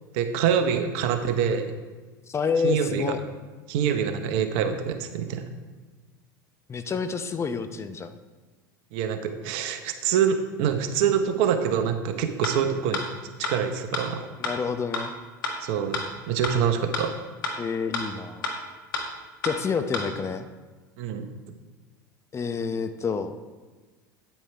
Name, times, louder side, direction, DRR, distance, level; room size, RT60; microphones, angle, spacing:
voice 1, 0.1-1.7 2.6-3.0 3.7-5.4 8.9-13.0 13.4-14.2 15.6-16.0 16.3-17.1 21.0-21.3, right 8 dB, 60° right, 8 dB, 1.0 m, -25 dB
voice 2, 2.3-3.2 6.7-8.1 14.4-15.1 17.6-18.5 19.4-20.5 22.3-23.3, left 5 dB, 25° left, 9 dB, 0.7 m, -28 dB
sound 1, 12.4-12.5 12.9-13.0 13.4-13.5 13.9-14.0 14.4-14.5 14.9-15.0 15.4-15.5 15.9-16.0 16.4-16.5 16.9-17.0 17.4-17.5 17.9-18.0 18.4-18.5 18.9-19.0 19.4-19.5 19.9-20.0, left 3 dB, 80° left, 1.5 m, -28 dB
9.1 x 8.8 x 3.4 m, 1.3 s
hypercardioid pair, 85°, 11 cm